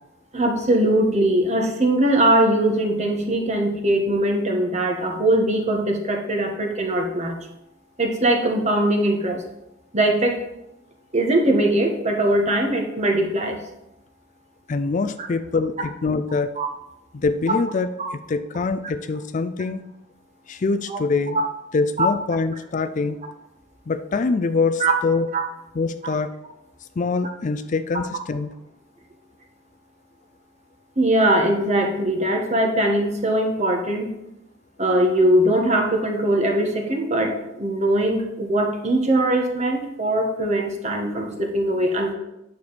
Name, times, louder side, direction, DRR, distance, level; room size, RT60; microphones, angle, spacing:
voice 1, 0.3-7.4 8.0-9.4 9.9-10.4 11.1-13.6 15.2-15.3 16.6-16.7 18.0-18.1 20.9-21.0 21.3-21.4 22.0-22.1 24.8-24.9 25.3-25.4 31.0-34.1 34.8-42.1, right 1 dB, 35° right, 2 dB, 1.5 m, -21 dB
voice 2, 14.7-16.5 17.1-19.8 20.5-21.4 21.7-23.2 23.9-25.3 25.7-26.3 27.0-28.5, left 4 dB, 40° left, 10 dB, 0.4 m, -24 dB
9.6 x 6.9 x 4.1 m, 0.87 s
head